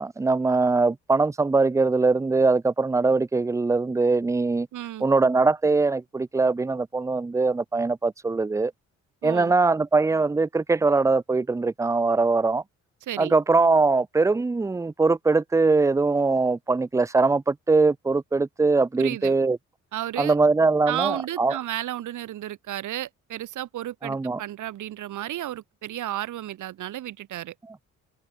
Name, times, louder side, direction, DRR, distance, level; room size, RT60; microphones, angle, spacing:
voice 1, 0.0-4.7 5.0-8.7 9.2-12.6 13.2-19.6 20.2-21.5 24.0-24.4, right 3 dB, 10° right, 0.5 m, -22 dB
voice 2, 4.7-5.1 9.2-9.5 13.0-13.3 19.0-19.3 19.9-20.4 20.9-27.5, right 13 dB, 80° right, 5.1 m, -33 dB
cardioid pair, 90°, 30 cm